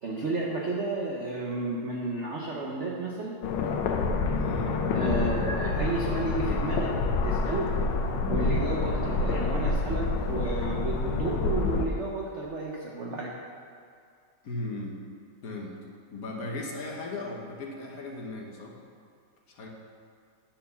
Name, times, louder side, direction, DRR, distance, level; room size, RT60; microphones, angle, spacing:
voice 1, 0.0-3.4 4.9-6.9 7.2-7.7 8.2-13.3, right 2 dB, 55° right, -2 dB, 0.8 m, -32 dB
sound 1, 3.4-11.9, left 3 dB, 85° left, 1.6 m, -27 dB
voice 2, 4.4-4.8 14.4-15.0 15.4-15.7 16.1-18.7 19.5-19.7, left 2 dB, 55° left, 0 dB, 1.2 m, -36 dB
9.6 x 4.5 x 6.9 m, 2.3 s
omnidirectional pair, 2.3 m